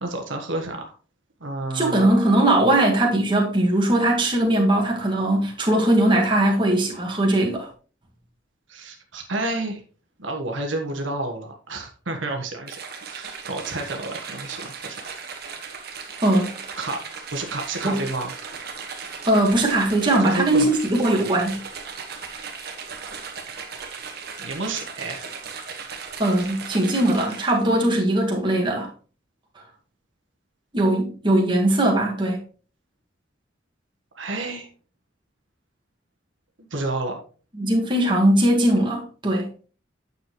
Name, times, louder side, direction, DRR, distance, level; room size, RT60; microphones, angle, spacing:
voice 1, 0.0-0.9 1.4-2.1 8.7-9.8 10.2-15.0 16.8-17.0 17.3-18.3 20.2-20.7 24.4-25.3 34.1-34.7 36.7-37.2, right 2 dB, 75° right, 1.3 m, -30 dB
voice 2, 1.7-7.7 16.2-16.5 17.8-18.0 19.3-21.6 26.2-28.9 30.7-32.4 37.6-39.5, right 1 dB, 25° right, 2.0 m, -20 dB
sound 1, 12.7-27.8, right 5 dB, 55° right, 1.5 m, -37 dB
9.4 x 6.7 x 3.1 m
head